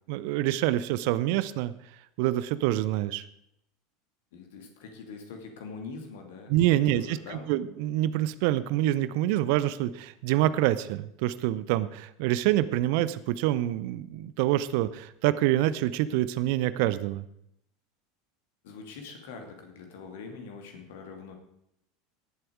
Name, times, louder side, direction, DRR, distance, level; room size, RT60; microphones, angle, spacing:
voice 1, 0.1-1.7 2.2-3.2 6.5-17.2, right 14 dB, 55° right, 15 dB, 0.6 m, -26 dB
voice 2, 4.3-6.5 6.8-7.5 18.6-21.3, left 4 dB, 60° left, 4 dB, 2.6 m, -43 dB
17.5 x 7.8 x 4.8 m, 0.76 s
figure-of-eight pair, 80°, 0 cm